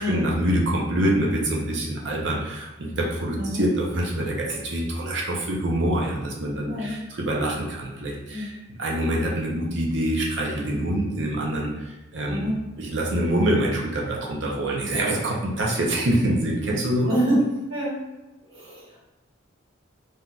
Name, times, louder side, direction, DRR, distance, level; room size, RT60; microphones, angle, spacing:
voice 1, 0.0-11.7 12.1-12.4 12.8-17.1, right 1 dB, 65° right, -2 dB, 0.6 m, -25 dB
voice 2, 17.0-17.4 17.7-18.0 18.5-19.0, right 1 dB, 85° right, -7 dB, 1.3 m, -26 dB
3.6 x 2.6 x 2.3 m, 1.0 s
head